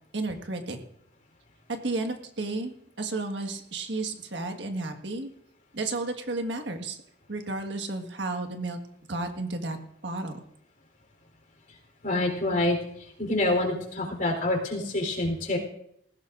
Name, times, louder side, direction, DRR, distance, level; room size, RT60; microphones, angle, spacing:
voice 1, 0.1-0.8 1.7-5.3 5.7-7.0 7.3-8.8 9.1-9.8 10.0-10.4, right 2 dB, 80° right, 5 dB, 1.6 m, -32 dB
voice 2, 12.0-15.6, left 2 dB, 50° left, 1 dB, 3.8 m, -27 dB
20.0 x 16.0 x 2.6 m, 0.73 s
head